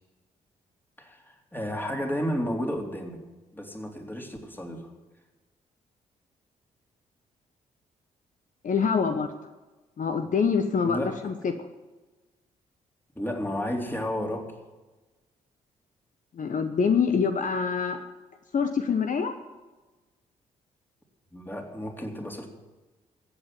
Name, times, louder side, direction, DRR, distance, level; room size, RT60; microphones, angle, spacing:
voice 1, 1.0-3.2 3.5-4.9 10.8-11.2 13.2-14.5 21.3-22.5, equal, 10° left, 2 dB, 3.7 m, -32 dB
voice 2, 8.6-9.3 10.0-11.5 16.3-18.0 18.5-19.3, left 6 dB, 50° left, 7 dB, 1.1 m, -25 dB
15.0 x 8.2 x 9.4 m, 1.2 s
supercardioid pair, 50°, 17 cm